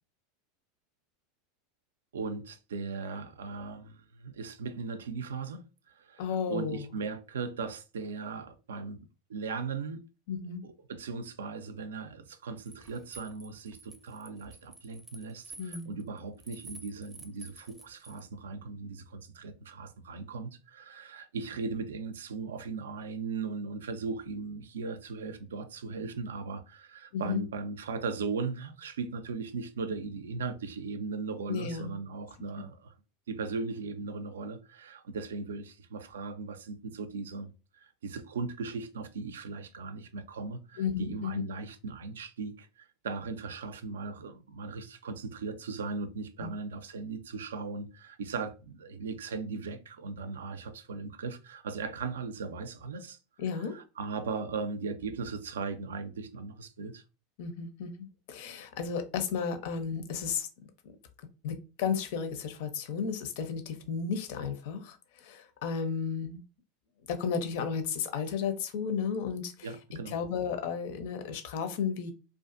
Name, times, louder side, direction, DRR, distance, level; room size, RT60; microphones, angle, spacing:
voice 1, 2.1-9.0 9.3-10.1 10.6-32.9 33.3-37.5 37.8-53.2 53.7-57.0 69.6-70.2, right 4 dB, 80° right, 0.3 m, -38 dB
voice 2, 6.2-6.8 10.3-10.6 15.6-16.0 27.1-27.4 31.5-32.0 40.8-41.4 46.4-46.5 53.4-53.8 57.4-60.5 60.8-61.0 61.4-66.4 67.1-69.7 70.1-72.1, left 6 dB, 65° left, 0.5 m, -33 dB
sound 1, 12.7-18.2, right 3 dB, 15° right, 0.5 m, -50 dB
2.4 x 2.4 x 2.4 m
hypercardioid pair, 85°, 0 cm